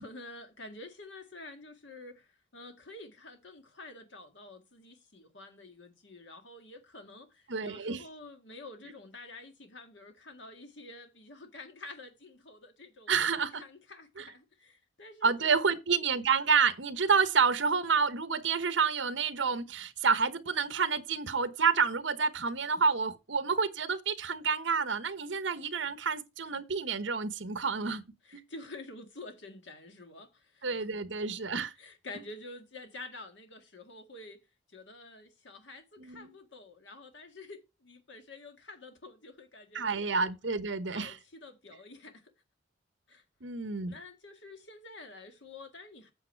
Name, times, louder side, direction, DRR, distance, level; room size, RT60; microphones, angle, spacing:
voice 1, 0.0-13.1 13.5-15.6 26.4-26.5 28.2-30.7 31.8-34.4 34.7-40.4 40.9-42.3 43.1-43.2 43.9-46.1, left 2 dB, 65° left, 1.8 m, -49 dB
voice 2, 7.5-8.0 13.1-13.6 14.2-14.3 15.2-28.0 28.3-28.4 30.6-31.7 36.0-36.3 39.7-41.1 43.4-43.9, right 5 dB, 70° right, 1.0 m, -29 dB
8.6 x 7.1 x 4.5 m
head